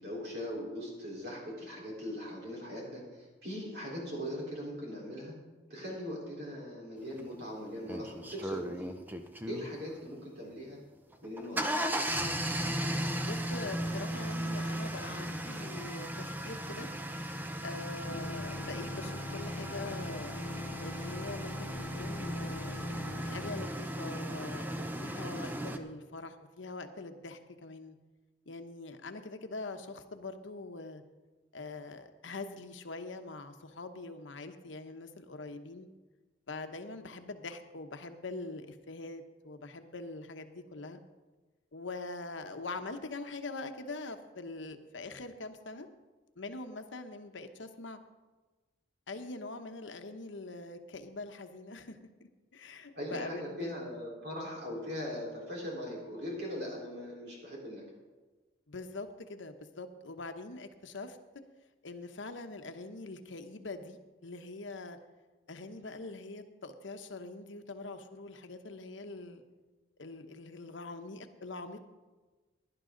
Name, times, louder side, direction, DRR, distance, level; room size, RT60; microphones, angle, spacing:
voice 1, 0.0-5.3 5.7-9.0 9.5-10.8 11.2-11.7 52.9-57.8, equal, 60° right, -3 dB, 4.1 m, -40 dB
sound 1, 7.2-7.3 7.9-9.7 11.1-25.8, right 1 dB, 10° right, 0.6 m, -36 dB
voice 2, 13.2-16.9 17.6-20.4 20.8-22.8 23.2-28.0 28.5-31.0 31.5-35.9 36.5-41.0 41.7-45.9 46.4-48.0 49.1-52.0 52.5-53.7 58.7-61.2 61.8-65.0 65.5-69.4 70.0-71.8, left 3 dB, 80° left, 8 dB, 1.0 m, -43 dB
sound 2, 18.0-23.6, left 1 dB, 45° left, 1.7 m, -42 dB
16.5 x 11.0 x 3.9 m, 1.3 s
head